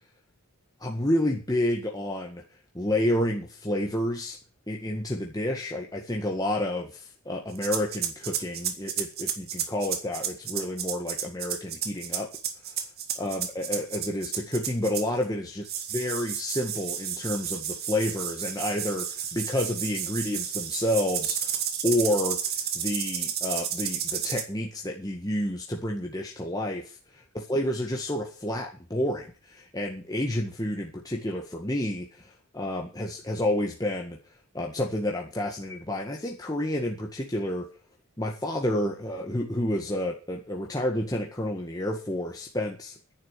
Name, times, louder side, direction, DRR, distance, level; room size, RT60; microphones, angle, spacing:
voice 1, 0.8-2.4 2.7-4.4 4.7-12.3 13.2-15.6 15.9-21.5 21.8-22.4 22.8-27.0 27.3-34.2 34.5-37.7 38.2-42.9, left 1 dB, 15° left, 0 dB, 1.8 m, -29 dB
sound 1, 7.6-15.2 15.6-24.4, right 9 dB, 45° right, 2.1 m, -32 dB
10.5 x 10.5 x 8.2 m, 0.35 s
head